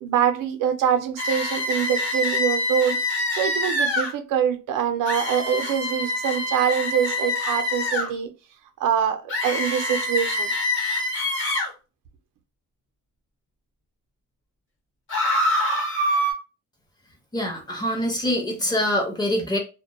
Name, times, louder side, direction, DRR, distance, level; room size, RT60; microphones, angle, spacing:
voice 1, 0.0-3.0 3.3-8.3 8.8-10.5, right 9 dB, 80° right, 0.5 m, -24 dB
sound 1, 1.2-4.1 5.1-8.1 9.3-11.7 15.1-16.3, left 1 dB, 40° left, 1.0 m, -25 dB
voice 2, 17.3-19.6, left 1 dB, 15° left, 0.6 m, -24 dB
2.1 x 2.1 x 2.8 m
cardioid pair, 140°, 32 cm